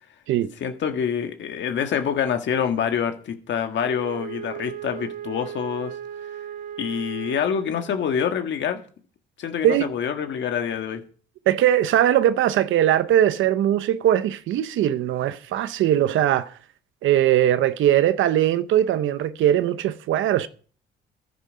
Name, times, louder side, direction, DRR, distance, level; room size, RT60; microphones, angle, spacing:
voice 1, 0.6-5.9 6.8-8.8 9.4-11.0, left 8 dB, 65° left, 1.6 m, -26 dB
Wind instrument woodwind instrument, 3.8-8.0, right 9 dB, 50° right, 2.5 m, -36 dB
voice 2, 11.5-16.5 17.0-20.5, right 11 dB, 80° right, 0.8 m, -20 dB
11.5 x 9.8 x 5.0 m
cardioid pair, 90°, 20 cm